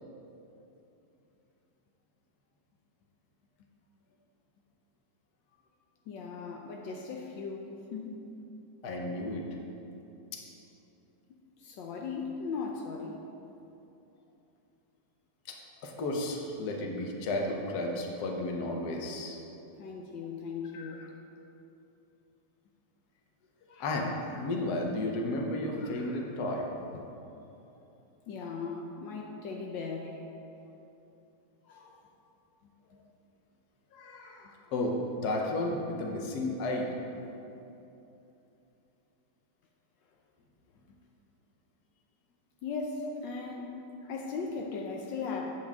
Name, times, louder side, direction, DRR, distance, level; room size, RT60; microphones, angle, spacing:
voice 1, 6.1-8.3 11.6-13.2 19.8-21.1 26.9-27.0 28.3-30.2 31.7-31.9 42.6-43.7 44.1-45.5, left 4 dB, 80° left, 0 dB, 1.4 m, -38 dB
voice 2, 8.8-9.4 15.5-15.6 15.8-19.4 20.7-20.9 23.7-26.7 31.7-31.9 33.9-36.9, left 1 dB, 60° left, 1 dB, 1.4 m, -33 dB
9.4 x 7.3 x 3.5 m, 2.9 s
omnidirectional pair, 2.0 m